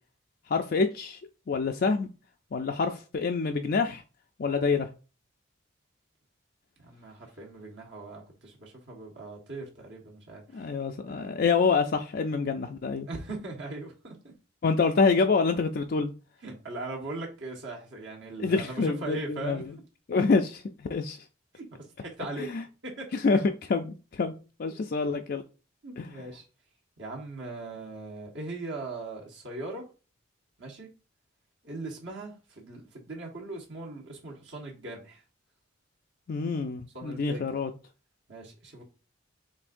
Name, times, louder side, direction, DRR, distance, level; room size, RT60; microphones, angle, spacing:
voice 1, 0.5-1.2 1.5-2.1 2.5-4.0 4.4-4.9 10.5-13.1 14.6-16.1 18.4-19.6 20.1-21.2 22.4-22.6 23.2-23.4 23.7-24.3 24.6-25.4 26.0-26.1 36.3-37.7, left 4 dB, 50° left, 0.4 m, -26 dB
voice 2, 6.8-10.7 11.1-11.3 13.1-14.3 16.4-19.6 21.5-21.6 22.0-22.5 22.8-23.1 25.8-26.4 27.0-29.9 30.6-30.9 31.6-35.2 36.9-37.5 38.3-38.8, right 2 dB, 65° right, 1.4 m, -40 dB
7.0 x 2.7 x 2.5 m
head